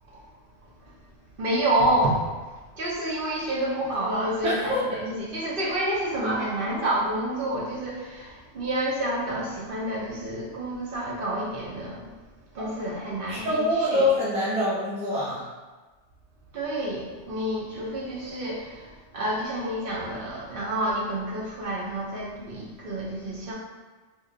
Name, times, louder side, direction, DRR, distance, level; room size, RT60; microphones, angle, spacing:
voice 1, 1.4-2.3 2.8-4.7 5.1-12.1 12.5-14.0 16.5-23.5, right 1 dB, 55° right, -5 dB, 0.8 m, -28 dB
voice 2, 4.4-4.8 12.6-12.7 13.3-15.4, left 1 dB, 5° right, -8 dB, 0.6 m, -25 dB
2.6 x 2.2 x 3.7 m, 1.2 s
omnidirectional pair, 1.2 m